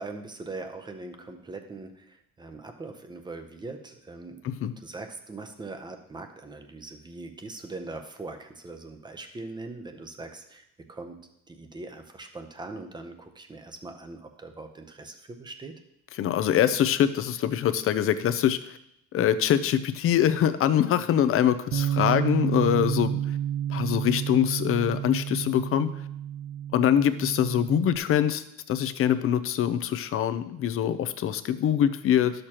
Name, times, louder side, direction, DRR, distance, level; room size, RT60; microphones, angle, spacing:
voice 1, 0.0-4.4 4.8-11.2 11.5-15.7, right 3 dB, 15° right, 6 dB, 0.7 m, -41 dB
voice 2, 16.1-18.8 19.1-23.2 23.7-25.9 26.7-32.3, left 10 dB, 50° left, 12 dB, 0.5 m, -24 dB
Bass guitar, 21.7-28.0, right 10 dB, 70° right, 0.5 m, -30 dB
12.0 x 6.5 x 2.9 m, 0.79 s
cardioid pair, 165°, 29 cm